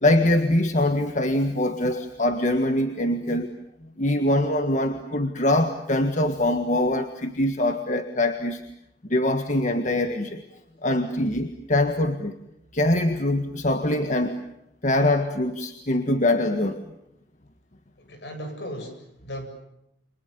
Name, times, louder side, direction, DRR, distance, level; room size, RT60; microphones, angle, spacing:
voice 1, 0.0-3.5 4.0-8.6 9.1-10.4 10.8-12.3 12.7-14.5 14.8-16.8, left 1 dB, 45° left, 7 dB, 1.7 m, -23 dB
voice 2, 18.1-19.5, equal, 65° left, 6 dB, 8.0 m, -36 dB
29.5 x 26.5 x 6.9 m, 0.81 s
head